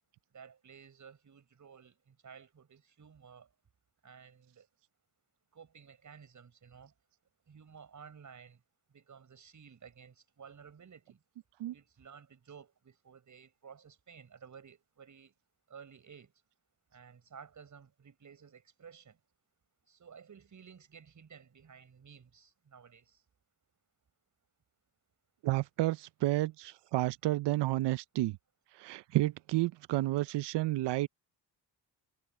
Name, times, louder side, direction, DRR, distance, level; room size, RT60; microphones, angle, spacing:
voice 1, 0.3-3.5 4.0-4.7 5.5-6.9 7.5-8.6 8.9-11.2 11.7-15.3 15.7-16.3 16.9-19.2 19.9-23.2, right 6 dB, 45° right, 7.2 m, -54 dB
voice 2, 25.4-28.4 28.7-31.1, right 17 dB, 80° right, 0.6 m, -31 dB
cardioid pair, 120°, 41 cm